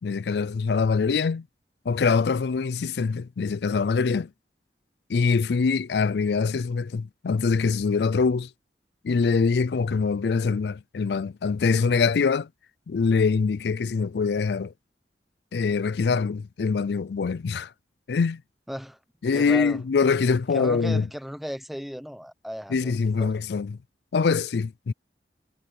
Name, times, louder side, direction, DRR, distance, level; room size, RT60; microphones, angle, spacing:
voice 1, 0.0-1.5 1.9-4.3 5.1-8.5 9.0-12.5 12.9-14.7 15.5-17.7 18.1-18.4 19.2-21.1 22.7-23.8 24.1-24.9, left 5 dB, 70° left, 0.4 m, -24 dB
voice 2, 18.7-19.0 19.3-19.8 20.5-23.3, equal, ahead, 0.8 m, -35 dB
head